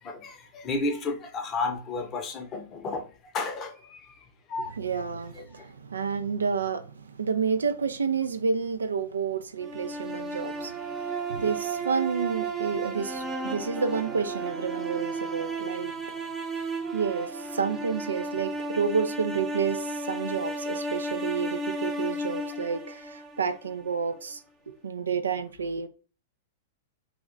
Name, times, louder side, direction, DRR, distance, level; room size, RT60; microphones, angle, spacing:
voice 1, 0.0-3.1 3.3-4.2 4.5-4.8 5.3-5.7, left 3 dB, 30° left, 0.6 m, -32 dB
voice 2, 4.8-10.7 11.3-15.9 16.9-24.4 24.8-25.9, right 6 dB, 90° right, 0.3 m, -30 dB
sound 1, 9.6-23.7, right 2 dB, 15° right, 0.4 m, -33 dB
2.3 x 2.2 x 3.6 m
hypercardioid pair, 115°, 0 cm